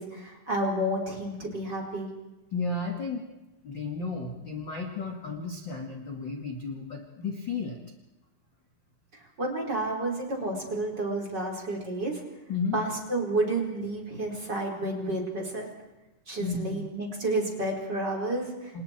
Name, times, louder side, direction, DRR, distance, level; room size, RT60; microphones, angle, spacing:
voice 1, 0.0-2.1 9.1-12.2 12.7-15.7 16.3-18.8, right 1 dB, 25° right, -1 dB, 4.6 m, -30 dB
voice 2, 2.5-3.3 3.6-7.8 12.5-12.8 16.4-16.9 18.7-18.8, left 4 dB, 35° left, 2 dB, 2.0 m, -33 dB
29.0 x 28.0 x 4.5 m, 1.0 s
omnidirectional pair, 5.1 m